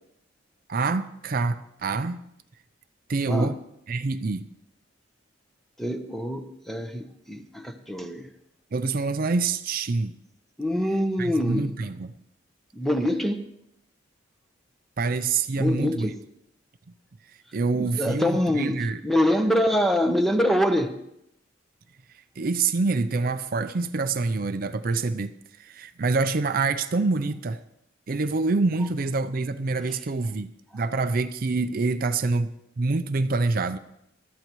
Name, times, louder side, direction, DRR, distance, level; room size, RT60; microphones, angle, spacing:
voice 1, 0.7-2.2 3.1-3.6 3.9-4.5 8.7-10.2 11.2-12.1 15.0-16.1 17.3-19.0 22.4-27.6 28.1-33.8, right 3 dB, 45° right, 10 dB, 0.5 m, -26 dB
voice 2, 5.8-8.3 10.6-11.7 12.7-13.4 15.6-16.1 17.7-21.0, equal, ahead, 6 dB, 0.8 m, -25 dB
21.0 x 13.5 x 3.0 m, 0.80 s
head